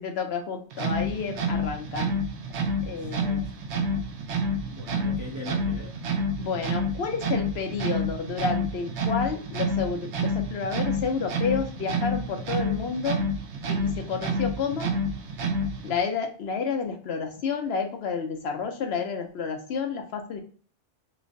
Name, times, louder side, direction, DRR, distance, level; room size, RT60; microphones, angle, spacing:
voice 1, 0.0-2.1 2.8-3.4 6.4-13.2 13.7-14.9 15.8-20.4, left 5 dB, 65° left, 5 dB, 0.8 m, -30 dB
sound 1, 0.7-15.9, equal, 70° right, 0.9 m, -29 dB
voice 2, 2.9-3.6 4.6-6.0, left 2 dB, 25° right, -1 dB, 0.4 m, -40 dB
3.1 x 3.1 x 2.6 m, 0.43 s
omnidirectional pair, 1.2 m